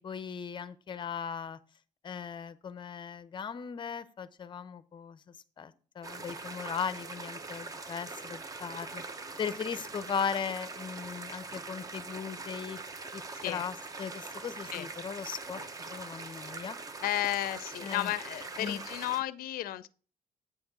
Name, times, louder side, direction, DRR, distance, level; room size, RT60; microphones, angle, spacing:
voice 1, 0.0-1.6 2.0-9.0 9.4-12.8 13.1-15.6 15.9-16.8 17.8-18.1 18.6-18.8, left 6 dB, 30° left, 0.5 m, -38 dB
sound 1, 6.0-19.2, right 3 dB, 25° right, 0.6 m, -43 dB
voice 2, 17.0-19.9, left 14 dB, 90° left, 0.4 m, -33 dB
8.5 x 3.5 x 6.6 m
cardioid pair, 170°, 15 cm